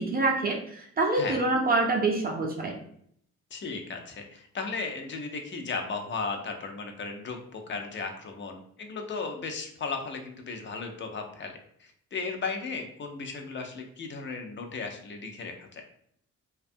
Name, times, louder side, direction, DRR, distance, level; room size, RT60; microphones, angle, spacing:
voice 1, 0.0-2.8, right 3 dB, 30° right, 1 dB, 0.5 m, -26 dB
voice 2, 1.1-1.4 3.5-11.5 11.8-15.8, left 4 dB, 40° left, 4 dB, 0.5 m, -35 dB
2.5 x 2.2 x 2.6 m, 0.67 s
cardioid pair, 100°, 31 cm